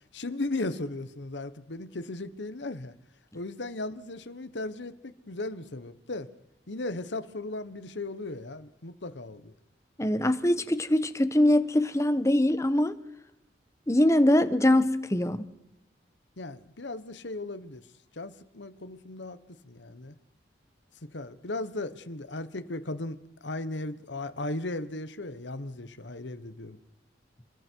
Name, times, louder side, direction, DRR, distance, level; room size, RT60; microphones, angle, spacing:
voice 1, 0.1-2.9 3.3-6.3 6.7-9.5 16.4-17.8 18.1-19.4 19.6-20.1 21.1-26.8, left 2 dB, 75° left, 1.3 m, -36 dB
voice 2, 10.0-13.0 13.9-15.4, left 1 dB, 15° left, 1.2 m, -23 dB
29.5 x 21.0 x 4.7 m
head